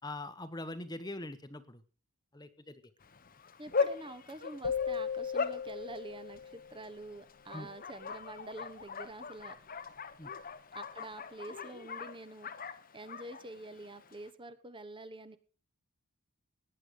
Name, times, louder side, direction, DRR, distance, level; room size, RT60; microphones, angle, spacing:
voice 1, 0.0-1.8 2.3-2.8 7.5-7.7 10.2-10.3, left 2 dB, 20° left, 11 dB, 1.1 m, -42 dB
Bark, 3.0-14.3, left 5 dB, 40° left, 1.0 m, -40 dB
voice 2, 3.6-9.6 10.7-15.4, right 2 dB, 25° right, 11 dB, 1.1 m, -47 dB
sound 1, 4.6-6.9, left 7 dB, 80° left, 1.3 m, -37 dB
18.0 x 9.9 x 5.1 m, 0.39 s
head